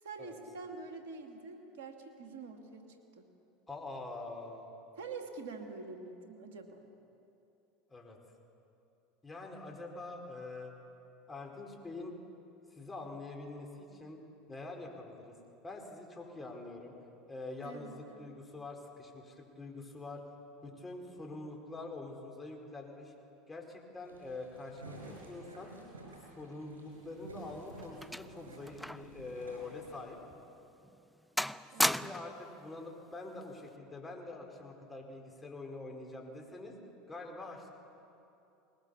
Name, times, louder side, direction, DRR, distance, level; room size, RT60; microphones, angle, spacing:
voice 1, 0.0-3.2 5.0-6.8 17.6-18.4 31.7-32.0, right 4 dB, 70° right, 3 dB, 2.7 m, -46 dB
voice 2, 3.7-4.7 7.9-8.2 9.2-10.7 11.3-12.1 12.7-14.2 14.5-15.3 15.6-17.0 17.3-20.2 20.6-23.1 23.5-25.7 26.4-30.2 31.8-36.8 37.1-37.7, left 2 dB, 20° left, 1 dB, 4.6 m, -45 dB
sound 1, 24.0-30.0, right 2 dB, 90° right, 6.2 m, -52 dB
sound 2, 27.1-29.2 29.5-29.6 30.3-30.4 30.8-31.1 31.4-32.4 33.4-33.7, equal, ahead, 0.5 m, -35 dB
21.0 x 20.0 x 7.2 m, 2.8 s
hypercardioid pair, 80°, 0 cm